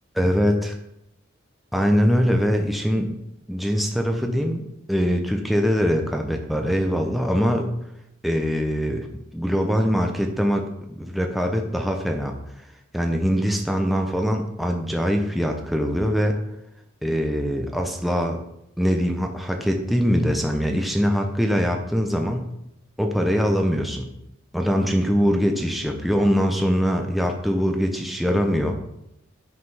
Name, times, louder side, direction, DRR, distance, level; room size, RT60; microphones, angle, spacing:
voice 1, 0.1-0.7 1.7-3.1 3.5-7.7 8.2-9.1 9.3-12.3 12.9-16.4 17.0-18.4 18.8-22.5 23.0-24.1 24.5-28.8, equal, ahead, 3 dB, 0.8 m, -22 dB
9.6 x 5.1 x 5.6 m, 0.80 s
head